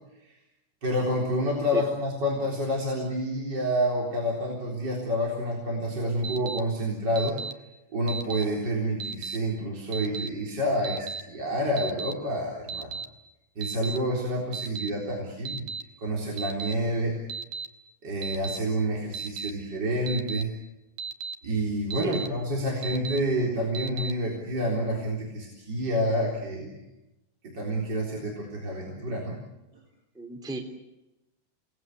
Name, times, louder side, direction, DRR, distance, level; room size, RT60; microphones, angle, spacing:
voice 1, 0.8-7.4 7.9-12.9 13.6-15.6 16.0-17.2 18.0-20.5 21.4-26.8 27.4-29.4, equal, 25° right, -2 dB, 3.8 m, -28 dB
Alarm, 6.2-6.6 7.2-7.5 8.1-8.4 9.0-9.4 9.9-10.3 10.8-11.2 11.8-12.1 12.7-13.0 13.6-14.0 14.5-14.9 15.4-15.8 16.4-16.7 17.3-17.7 18.2-18.6 19.1-19.5 20.1-20.4 21.0-21.3 21.9-22.3 22.8-23.2 23.7-24.1, right 6 dB, 80° right, 1.9 m, -35 dB
voice 2, 30.1-30.6, right 3 dB, ahead, 4 dB, 1.8 m, -33 dB
29.5 x 19.5 x 8.2 m, 0.95 s
omnidirectional pair, 5.7 m